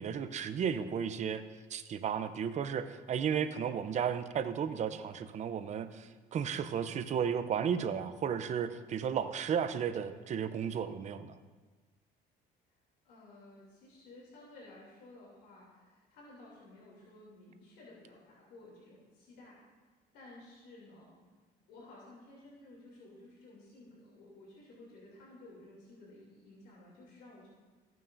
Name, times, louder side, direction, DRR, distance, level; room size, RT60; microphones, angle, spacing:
voice 1, 0.0-1.4 1.7-11.4, right 7 dB, 45° right, 11 dB, 0.6 m, -34 dB
voice 2, 13.0-19.6 20.1-21.1 21.7-27.5, left 2 dB, 85° left, -5 dB, 3.0 m, -54 dB
14.5 x 9.0 x 2.6 m, 1.3 s
cardioid pair, 110°, 17 cm